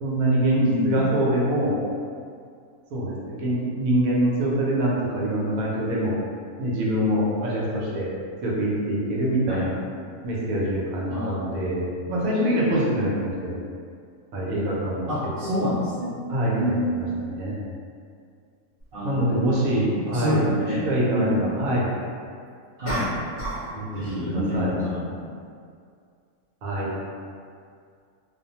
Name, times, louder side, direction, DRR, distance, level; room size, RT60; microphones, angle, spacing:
voice 1, 0.0-1.8 2.9-6.1 6.6-8.1 8.4-9.8 10.2-13.5 14.3-15.1 15.4-15.5 16.3-17.6 19.0-20.4 20.8-21.9 23.7-24.8 26.6-26.9, right 1 dB, 85° right, -6 dB, 1.1 m, -24 dB
voice 2, 0.6-1.1 9.5-9.7 11.1-11.7 15.1-16.2 16.6-17.0 18.9-19.5 20.0-20.8 21.1-21.6 22.8-23.1 24.0-25.3, equal, 60° right, -11 dB, 0.6 m, -27 dB
sound 1, 18.8-18.9 22.8-23.7 24.0-24.3, right 1 dB, 20° left, 0.6 m, -31 dB
2.6 x 2.1 x 2.8 m, 2.2 s
omnidirectional pair, 1.4 m